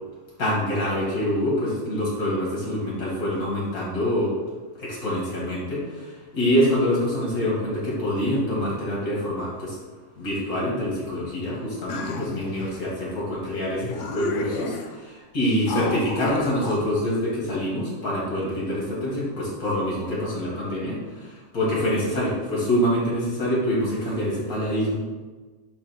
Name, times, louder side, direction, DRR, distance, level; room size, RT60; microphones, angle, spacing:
voice 1, 0.4-4.3 4.8-9.8 10.2-25.0, equal, 85° left, -5 dB, 2.6 m, -25 dB
sound 1, 11.9-12.7 13.4-13.5 13.8-15.0 15.7-16.8, left 4 dB, 65° left, 0.9 m, -32 dB
8.7 x 2.9 x 4.4 m, 1.3 s
omnidirectional pair, 1.5 m